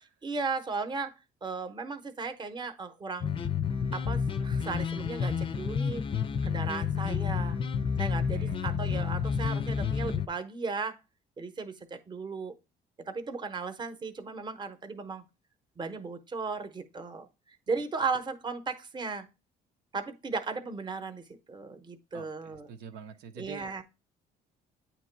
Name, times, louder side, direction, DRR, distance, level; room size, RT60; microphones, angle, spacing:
voice 1, 0.2-1.1 1.4-3.3 3.9-6.0 6.4-7.6 8.0-11.0 11.4-11.7 12.1-12.5 13.1-15.2 15.8-17.3 17.7-19.3 19.9-22.7 23.4-23.8, right 4 dB, 25° right, 0.8 m, -36 dB
sound 1, 3.2-10.3, left 6 dB, 30° left, 0.5 m, -30 dB
voice 2, 8.3-8.6 22.1-23.8, right 7 dB, 85° right, 0.8 m, -46 dB
8.7 x 3.0 x 4.5 m
cardioid pair, 110°, 17 cm